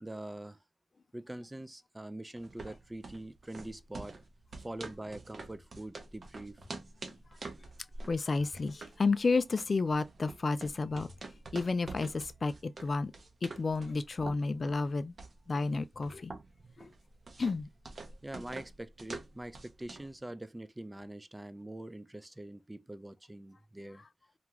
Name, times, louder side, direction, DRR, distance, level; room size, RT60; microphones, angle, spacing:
voice 1, 0.0-0.6 1.1-4.2 4.6-6.6 18.2-24.0, right 1 dB, 20° right, 0.4 m, -44 dB
sound 1, 2.4-20.2, right 3 dB, 65° right, 0.6 m, -47 dB
voice 2, 8.1-11.1 11.5-13.1 13.4-15.1 15.5-16.3 16.8-16.9 17.4-17.7, left 3 dB, 55° left, 0.3 m, -31 dB
2.4 x 2.3 x 2.9 m
cardioid pair, 55°, 0 cm